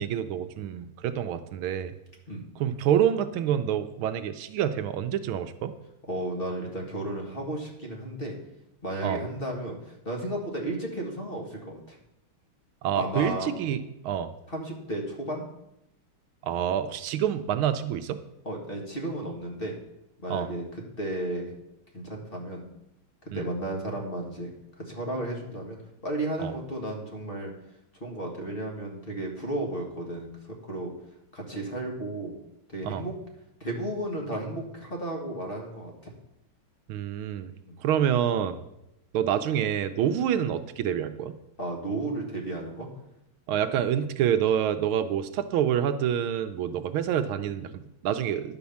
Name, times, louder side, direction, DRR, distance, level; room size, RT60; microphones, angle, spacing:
voice 1, 0.0-1.9 2.6-5.7 9.0-9.2 12.8-14.3 16.4-18.2 20.3-20.5 23.3-23.4 26.4-26.5 32.8-33.0 36.9-37.5 37.8-38.6 39.1-41.4 43.5-48.6, right 9 dB, 80° right, 10 dB, 1.4 m, -27 dB
voice 2, 6.1-8.3 8.8-12.0 12.9-13.5 14.5-15.5 18.5-19.7 20.2-21.5 21.9-22.6 23.2-24.5 24.8-25.8 26.0-27.5 28.0-30.3 30.6-30.9 31.3-32.3 32.7-33.1 33.6-36.1 37.7-37.8 41.6-42.9, right 1 dB, 25° left, 0 dB, 1.7 m, -33 dB
10.5 x 5.3 x 7.0 m, 0.86 s
omnidirectional pair, 2.4 m